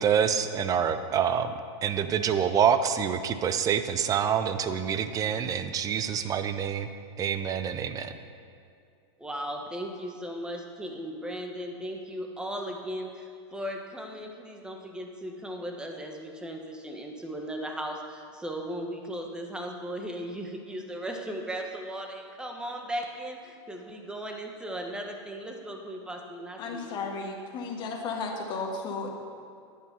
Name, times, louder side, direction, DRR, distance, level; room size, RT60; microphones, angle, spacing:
voice 1, 0.0-1.5 1.8-6.9 7.2-8.1, right 8 dB, 25° right, 10 dB, 0.6 m, -26 dB
voice 2, 9.2-27.0, equal, 5° right, 2 dB, 1.2 m, -37 dB
voice 3, 26.6-29.1, left 4 dB, 30° left, 0 dB, 1.8 m, -34 dB
11.0 x 8.5 x 5.6 m, 2.4 s
supercardioid pair, 135°, 15 cm